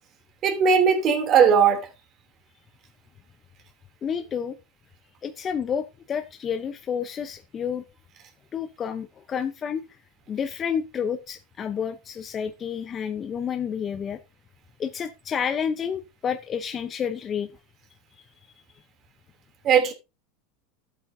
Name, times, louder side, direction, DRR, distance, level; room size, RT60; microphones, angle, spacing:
voice 1, 0.4-1.8 19.6-19.9, right 6 dB, 40° right, 2.9 m, -18 dB
voice 2, 4.0-4.6 5.2-7.8 8.5-10.0 10.3-14.2 14.8-17.5, left 7 dB, 30° left, 0.7 m, -30 dB
13.0 x 8.4 x 2.7 m
supercardioid pair, 110°, 0 cm